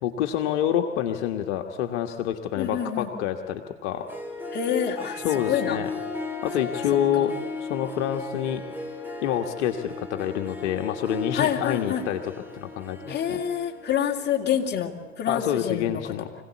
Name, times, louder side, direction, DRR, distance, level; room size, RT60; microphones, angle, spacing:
voice 1, 0.0-4.1 5.2-5.9 6.4-7.3 7.6-8.6 9.2-13.4 15.3-16.3, left 10 dB, 60° left, 5 dB, 1.6 m, -27 dB
voice 2, 2.6-3.1 4.5-5.2 5.5-5.8 7.1-7.3 11.3-12.0 13.1-16.1, left 9 dB, 25° left, 1 dB, 2.8 m, -27 dB
Harp, 3.9-15.1, left 3 dB, 5° right, 3.0 m, -36 dB
25.0 x 17.0 x 8.4 m, 1.3 s
hypercardioid pair, 95°, 39 cm